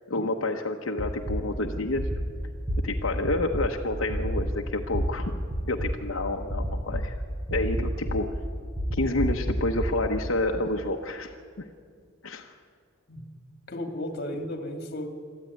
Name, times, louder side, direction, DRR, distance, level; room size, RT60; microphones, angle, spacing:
voice 1, 0.1-2.1 2.8-5.3 5.7-7.2 7.5-8.4 8.9-11.7 12.2-12.5, left 2 dB, 80° left, 2 dB, 1.1 m, -29 dB
sound 1, 1.0-1.4 2.0-2.2 2.7-2.8 3.2-3.6 4.1-4.5 4.9-5.0 5.5-5.9 6.5-7.0 7.5-8.1 8.8-9.8, equal, 20° right, 5.2 m, -29 dB
voice 2, 13.7-15.1, left 1 dB, 50° left, 6 dB, 2.2 m, -34 dB
22.5 x 14.0 x 9.7 m, 2.2 s
head